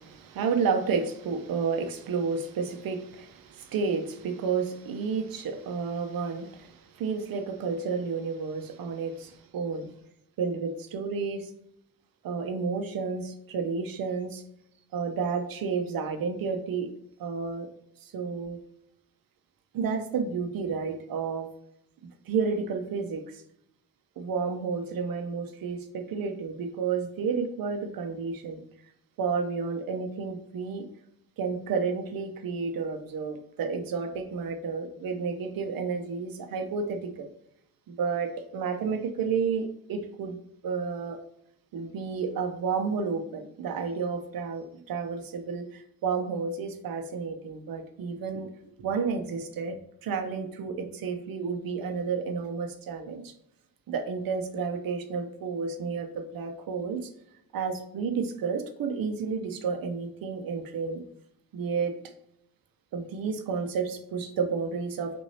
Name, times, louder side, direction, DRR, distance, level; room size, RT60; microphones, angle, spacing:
voice 1, 0.0-9.9 10.4-11.5 12.2-14.4 14.9-16.9 17.2-17.7 18.0-18.6 19.7-21.5 22.3-23.4 24.2-28.6 29.2-30.9 31.4-37.3 37.9-40.4 40.6-41.2 41.7-53.3 53.9-57.1 57.5-61.0 61.5-61.9 62.9-65.2, right 5 dB, 85° right, 6 dB, 0.8 m, -31 dB
6.2 x 2.7 x 2.8 m, 0.75 s
cardioid pair, 75°, 34 cm